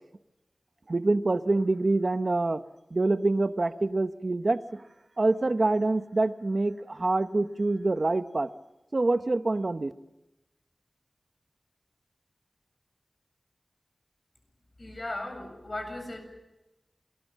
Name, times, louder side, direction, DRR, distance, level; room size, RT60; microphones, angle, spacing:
voice 1, 0.9-2.6 2.9-4.8 5.2-8.5 8.9-9.9, right 2 dB, 55° right, 10 dB, 1.0 m, -26 dB
voice 2, 14.8-16.2, left 2 dB, 45° left, 5 dB, 7.6 m, -37 dB
28.0 x 20.5 x 7.5 m, 0.98 s
wide cardioid pair, 70°, 0 cm